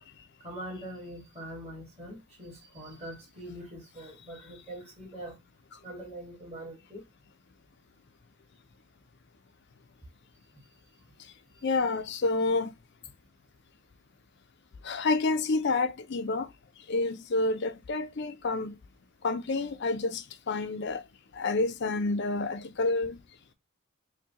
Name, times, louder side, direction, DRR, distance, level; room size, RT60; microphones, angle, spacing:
voice 1, 0.4-5.4 5.8-7.0, right 1 dB, 30° right, 1.9 m, -43 dB
voice 2, 11.6-12.7 14.8-16.5 16.9-18.7 19.2-20.2 20.5-21.0 21.4-23.2, left 3 dB, 50° left, 0.4 m, -28 dB
4.5 x 2.2 x 2.8 m
head